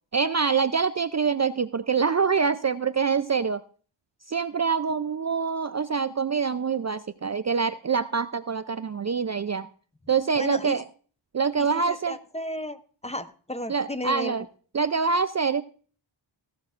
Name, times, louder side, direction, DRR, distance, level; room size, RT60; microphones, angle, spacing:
voice 1, 0.1-3.6 4.3-9.7 10.1-10.8 11.3-12.2 13.7-14.4 14.7-15.6, right 5 dB, 40° right, 13 dB, 0.4 m, -25 dB
voice 2, 10.4-10.8 11.9-14.3, left 1 dB, 15° left, 12 dB, 0.6 m, -34 dB
15.5 x 12.0 x 2.4 m, 0.42 s
wide cardioid pair, 75°, 47 cm